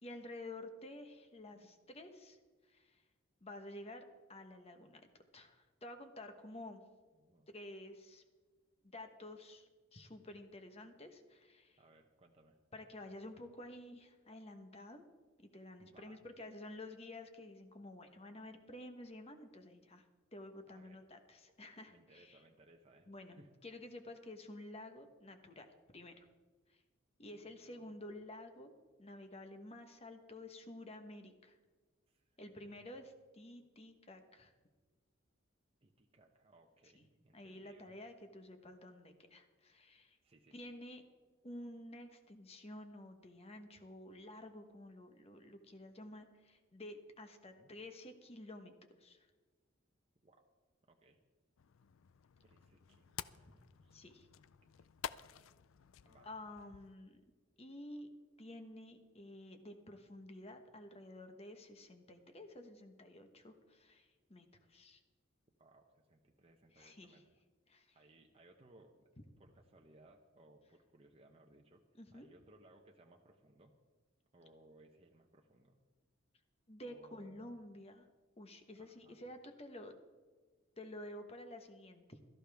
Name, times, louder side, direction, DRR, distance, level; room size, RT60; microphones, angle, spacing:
voice 1, 0.0-2.4 2.7-3.0 3.4-4.0 4.3-5.0 5.3-6.8 7.5-8.2 8.8-11.8 12.7-15.0 15.5-20.0 20.3-22.4 23.1-25.7 25.9-26.3 26.7-26.8 27.2-28.7 29.0-31.6 32.4-34.5 36.9-37.1 37.3-40.2 40.5-41.0 41.4-48.7 49.0-49.3 53.9-54.3 56.2-57.2 57.6-58.1 58.4-65.0 66.7-67.2 67.7-68.0 72.0-72.3 76.7-78.1 78.4-79.9 80.8-82.2, left 1 dB, 30° left, 7 dB, 1.2 m, -51 dB
voice 2, 7.1-7.5 11.8-12.6 15.8-16.3 20.7-21.0 21.9-23.5 27.3-27.9 32.1-32.9 35.8-37.9 40.2-40.6 47.6-47.7 50.2-50.4 50.9-51.2 52.4-54.0 54.7-55.1 56.0-56.3 65.6-67.4 67.9-69.1 69.4-71.8 72.1-73.7 74.3-75.8 76.8-77.6 78.7-79.2, right 2 dB, 30° right, 1 dB, 0.9 m, -65 dB
pig head hammer wet, 51.6-57.0, left 9 dB, 70° left, 0.4 m, -51 dB
17.0 x 13.5 x 3.5 m, 1.4 s
head